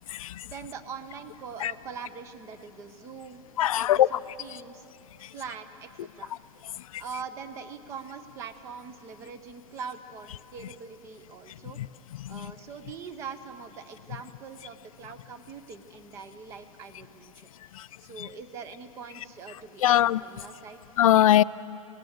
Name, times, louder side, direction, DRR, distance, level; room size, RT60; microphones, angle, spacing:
voice 1, 0.4-4.8 5.3-5.9 6.2-6.4 7.0-11.8 12.3-20.8, right 6 dB, 15° right, 12 dB, 0.6 m, -43 dB
voice 2, 3.6-4.2 11.8-11.9 12.2-12.5 17.8-17.9 18.2-18.3 19.8-20.2 21.0-21.4, left 12 dB, 85° left, 18 dB, 0.5 m, -21 dB
19.0 x 18.5 x 7.9 m, 2.7 s
supercardioid pair, 175°, 17 cm